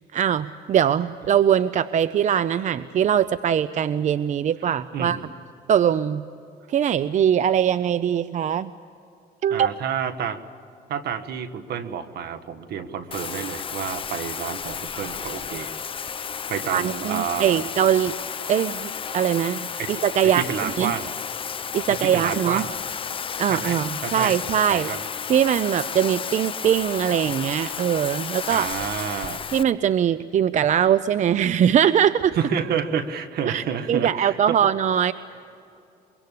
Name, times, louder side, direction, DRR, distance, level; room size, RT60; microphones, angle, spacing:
voice 1, 0.1-5.2 5.7-6.2 6.7-8.7 9.4-9.7 16.7-18.1 18.5-20.4 20.8-20.9 21.7-22.7 23.4-24.9 25.3-28.7 29.5-32.3 33.5-35.1, right 9 dB, 45° right, 15 dB, 0.6 m, -21 dB
voice 2, 9.5-10.4 10.9-15.7 16.5-17.6 19.8-21.1 21.9-22.8 23.4-24.4 24.7-25.0 28.5-29.4 32.4-34.6, right 7 dB, 65° right, 11 dB, 1.6 m, -29 dB
Bathtub (filling or washing), 13.1-29.6, left 7 dB, 30° left, 0.7 m, -32 dB
24.5 x 23.0 x 8.4 m, 2.6 s
cardioid pair, 110°, 17 cm